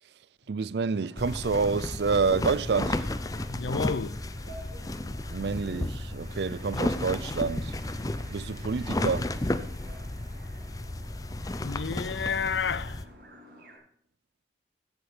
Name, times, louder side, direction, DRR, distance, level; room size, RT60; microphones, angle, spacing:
voice 1, 0.5-3.0 5.3-7.8 8.3-9.3, right 5 dB, 70° right, 0.4 m, -28 dB
sound 1, 0.8-13.8, right 1 dB, 55° right, 6.5 m, -52 dB
sound 2, 1.2-13.0, left 1 dB, 20° left, 0.6 m, -33 dB
voice 2, 3.4-4.2 11.6-13.0, left 5 dB, 80° left, 0.6 m, -31 dB
sound 3, 6.1-11.5, right 3 dB, 35° right, 2.7 m, -55 dB
14.5 x 8.1 x 4.9 m
head